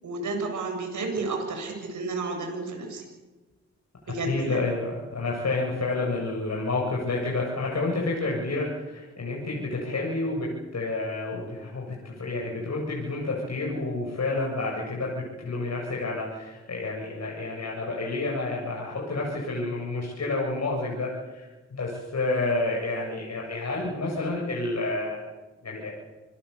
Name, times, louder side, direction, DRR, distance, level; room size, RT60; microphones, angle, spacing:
voice 1, 0.0-3.0 4.1-4.6, right 3 dB, 85° right, 2 dB, 7.6 m, -31 dB
voice 2, 4.0-21.5 21.7-25.2 25.6-26.0, left 2 dB, 60° left, -2 dB, 7.8 m, -29 dB
27.0 x 19.5 x 8.4 m, 1.2 s
cardioid pair, 50°, 29 cm